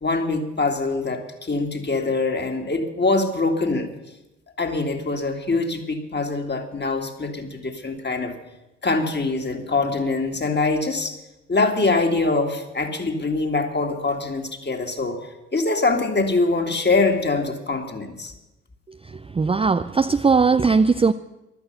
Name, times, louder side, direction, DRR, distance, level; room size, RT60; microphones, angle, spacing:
voice 1, 0.0-3.9 4.6-8.4 8.8-11.2 11.5-15.2 15.5-18.3, left 3 dB, 25° left, 5 dB, 2.5 m, -23 dB
voice 2, 19.4-21.1, right 4 dB, 15° right, 10 dB, 0.5 m, -18 dB
15.0 x 11.5 x 6.9 m, 0.99 s
hypercardioid pair, 45°, 37 cm